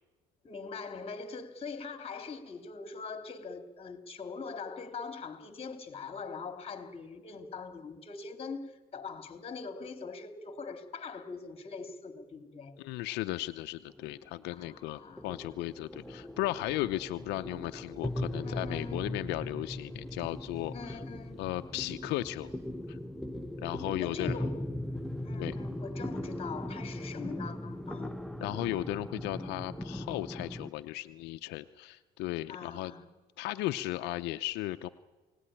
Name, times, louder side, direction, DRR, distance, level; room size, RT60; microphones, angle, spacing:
voice 1, 0.4-12.8 14.5-15.6 18.4-19.1 20.7-21.4 24.0-24.7 25.2-28.2 32.5-33.1, left 4 dB, 35° left, 2.7 m, -42 dB
voice 2, 12.8-21.0 21.4-22.6 22.9-23.0 23.6-24.5 25.4-25.6 28.4-32.9 33.4-34.9, left 16 dB, 90° left, 0.7 m, -36 dB
sound 1, 13.9-30.7, left 1 dB, ahead, 1.0 m, -39 dB
28.5 x 18.5 x 10.0 m
cardioid pair, 110°, 17 cm